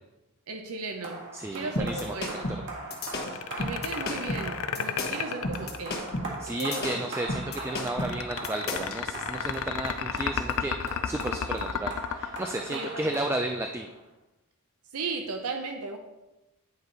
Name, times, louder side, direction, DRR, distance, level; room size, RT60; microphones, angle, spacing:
voice 1, 0.5-1.2 1.5-2.5 3.6-6.0 6.6-7.0 12.7-13.2 14.9-16.0, right 3 dB, 75° right, 4 dB, 0.7 m, -36 dB
sound 1, 1.0-14.1, right 2 dB, 55° right, 1.7 m, -41 dB
voice 2, 1.3-2.2 6.4-13.9, right 1 dB, 10° right, 4 dB, 0.3 m, -33 dB
sound 2, 1.8-9.0, left 1 dB, 45° left, 1.2 m, -33 dB
sound 3, 3.2-6.3 7.8-13.3, left 8 dB, 65° left, 0.5 m, -32 dB
9.1 x 4.8 x 4.0 m, 1.0 s
head